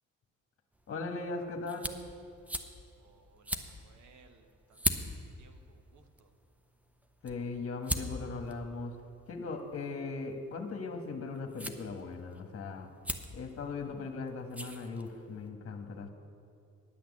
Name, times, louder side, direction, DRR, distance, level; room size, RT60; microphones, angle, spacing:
sound 1, 0.7-15.5, equal, 5° right, 0.6 m, -42 dB
voice 1, 0.9-2.0 7.2-8.9 9.3-12.9 13.3-16.1, left 4 dB, 50° left, 5 dB, 1.3 m, -39 dB
voice 2, 3.0-5.1 5.4-6.3, right 5 dB, 75° right, 7 dB, 1.1 m, -63 dB
10.0 x 6.0 x 8.4 m, 2.6 s
cardioid pair, 90°, 30 cm